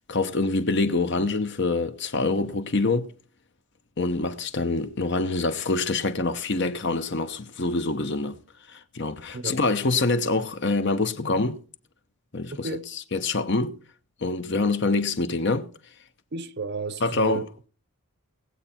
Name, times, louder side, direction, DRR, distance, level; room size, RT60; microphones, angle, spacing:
voice 1, 0.1-3.1 4.0-8.4 8.7-11.6 12.3-13.8 14.2-15.7 17.0-17.5, left 3 dB, 50° left, 0.9 m, -25 dB
voice 2, 16.3-17.5, right 3 dB, 50° right, 0.7 m, -32 dB
18.5 x 8.0 x 4.3 m
head